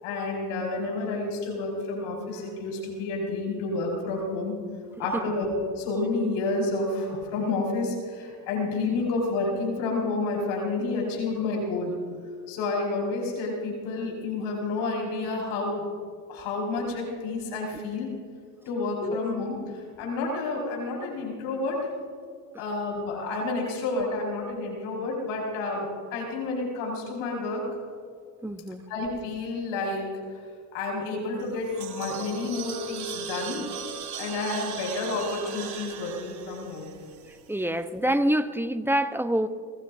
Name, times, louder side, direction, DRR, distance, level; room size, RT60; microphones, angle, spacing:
voice 1, 0.0-4.5 5.0-5.5 5.8-11.9 12.5-15.8 16.3-18.1 18.7-19.6 20.0-21.9 22.6-27.7 28.9-30.1 30.7-33.6 34.2-36.9, left 3 dB, 70° left, -1 dB, 5.2 m, -30 dB
voice 2, 28.4-28.8 37.5-39.5, right 1 dB, 5° right, 10 dB, 0.9 m, -26 dB
sound 1, 31.4-37.7, right 7 dB, 50° right, 3.0 m, -38 dB
24.5 x 19.5 x 2.7 m, 2.2 s
hypercardioid pair, 65°, 50 cm